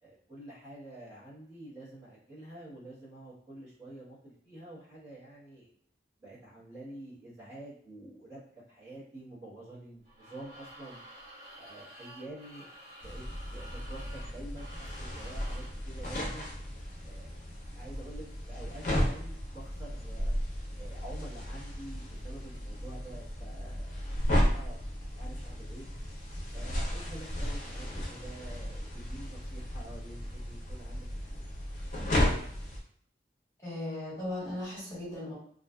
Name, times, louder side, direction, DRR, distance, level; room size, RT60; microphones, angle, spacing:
voice 1, 0.0-5.7 6.2-8.4 8.7-11.0 11.6-12.7 13.0-13.2 13.5-16.5 17.0-17.3 17.7-20.3 20.8-24.0 24.3-25.9 26.5-31.4, right 1 dB, 20° right, -13 dB, 0.9 m, -48 dB
sound 1, 10.0-15.8, equal, 65° right, 1.4 m, -50 dB
sound 2, 13.0-32.8, left 1 dB, 45° left, 0.5 m, -34 dB
voice 2, 33.6-35.3, left 1 dB, 15° left, -9 dB, 1.2 m, -37 dB
2.4 x 2.3 x 2.2 m, 0.62 s
head